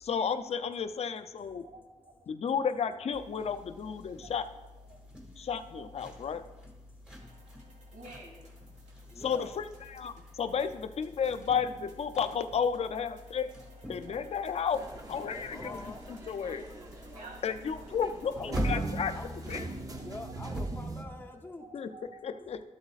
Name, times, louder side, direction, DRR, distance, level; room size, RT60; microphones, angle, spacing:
voice 1, 0.0-1.6 2.3-4.4 5.4-6.4 9.2-13.5 13.9-14.8 15.1-15.8 16.1-16.7 17.4-19.1 19.5-19.6 21.7-21.9 22.2-22.6, left 7 dB, 55° left, 10 dB, 0.4 m, -32 dB
voice 2, 1.5-2.5 3.9-4.3 4.9-5.0 5.3-5.4 5.7-5.9 7.9-8.4 14.1-14.6 15.4-15.5 15.9-16.0 16.5-16.7 17.1-17.4 19.8-20.1 21.6-22.4, right 2 dB, 90° right, 0 dB, 2.1 m, -52 dB
sound 1, 3.1-20.6, left 1 dB, 5° right, 1.6 m, -49 dB
sound 2, 7.2-19.8, right 1 dB, 70° right, 2.1 m, -62 dB
voice 3, 9.1-9.6 11.2-11.4 15.5-16.1 18.3-19.3 20.0-21.7, left 2 dB, 15° left, 2 dB, 0.7 m, -45 dB
sound 3, 14.7-21.0, right 2 dB, 25° right, 0.6 m, -38 dB
12.5 x 7.9 x 2.4 m, 1.2 s
wide cardioid pair, 160°, 13 cm